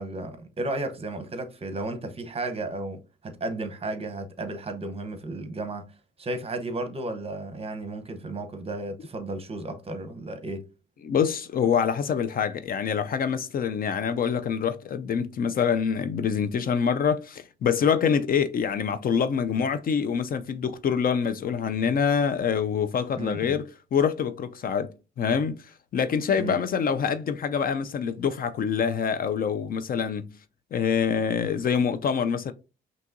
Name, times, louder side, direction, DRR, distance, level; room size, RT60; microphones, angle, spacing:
voice 1, 0.0-5.9 6.2-10.7 23.1-23.6 26.4-26.6, right 2 dB, 30° right, 0.8 m, -33 dB
voice 2, 11.0-25.6 25.9-30.3 30.7-32.5, left 7 dB, 45° left, 0.4 m, -25 dB
5.5 x 2.7 x 2.5 m
cardioid pair, 90°, 20 cm